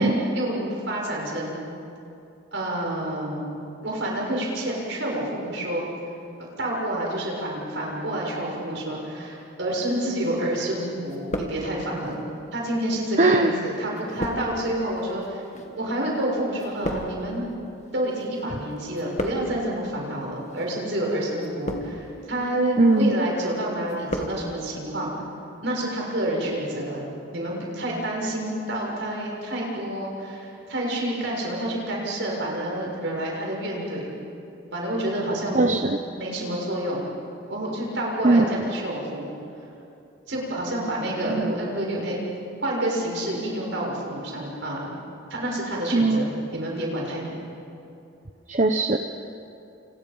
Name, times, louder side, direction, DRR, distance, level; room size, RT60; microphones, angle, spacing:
voice 1, 0.0-1.6 2.5-3.5 3.8-5.9 6.6-12.3 12.5-15.4 15.8-17.4 17.9-25.1 25.6-27.1 27.3-34.1 34.7-35.6 36.2-37.0 37.5-39.3 40.3-42.2 42.6-44.9 45.3-47.4, right 1 dB, 60° right, -2 dB, 6.8 m, -28 dB
sound 1, 10.2-10.8 11.0-12.1 12.8-18.4 18.7-19.7 20.4-20.7 21.4-22.2 22.6-23.1 23.4-24.4 24.7-24.8, equal, 35° left, 2.1 m, -35 dB
voice 2, 13.2-13.5 22.8-23.1 35.5-36.0 38.2-38.4 41.3-41.5 45.9-46.2 48.5-49.0, right 2 dB, 35° right, 6 dB, 0.8 m, -19 dB
29.5 x 29.0 x 5.5 m, 2.7 s
head